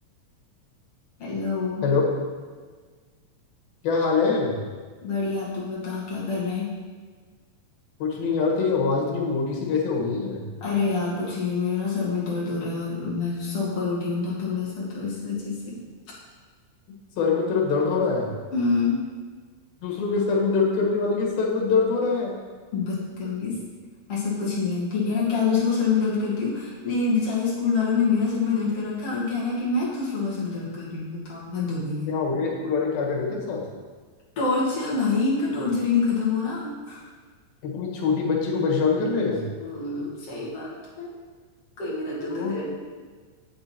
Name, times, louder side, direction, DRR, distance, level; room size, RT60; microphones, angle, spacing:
voice 1, 1.2-1.9 5.0-6.7 10.6-15.8 18.5-19.0 22.7-23.6 24.1-32.1 34.4-37.0 39.6-41.1 41.8-42.7, left 4 dB, 45° left, -7 dB, 3.0 m, -26 dB
voice 2, 3.8-4.6 8.0-10.5 17.2-18.3 19.8-22.4 32.1-33.6 37.6-39.5 42.3-42.6, left 4 dB, 85° left, -2 dB, 3.5 m, -24 dB
8.5 x 7.7 x 4.4 m, 1.5 s
omnidirectional pair, 4.1 m